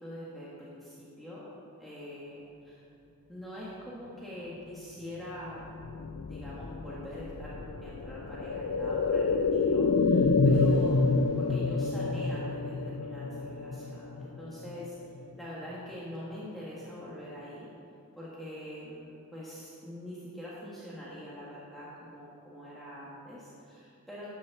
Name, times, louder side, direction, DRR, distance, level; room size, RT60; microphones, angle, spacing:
voice 1, 0.0-1.5 1.8-2.8 3.3-5.7 6.3-14.9 15.4-17.7 18.1-24.3, equal, ahead, -8 dB, 1.6 m, -44 dB
sound 1, 5.5-15.3 15.6-15.7, left 3 dB, 85° left, 0.5 m, -28 dB
11.5 x 6.4 x 7.1 m, 2.6 s
head